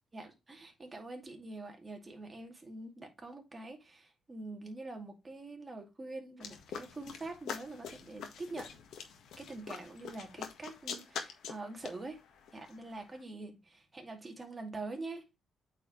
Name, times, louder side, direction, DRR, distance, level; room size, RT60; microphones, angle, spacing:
voice 1, 0.1-8.7 9.4-12.2 12.5-15.2, right 2 dB, 25° right, 2.3 m, -45 dB
sound 1, 6.4-13.2, left 7 dB, 80° left, 1.5 m, -45 dB
8.5 x 4.9 x 3.0 m
cardioid pair, 115°, 0 cm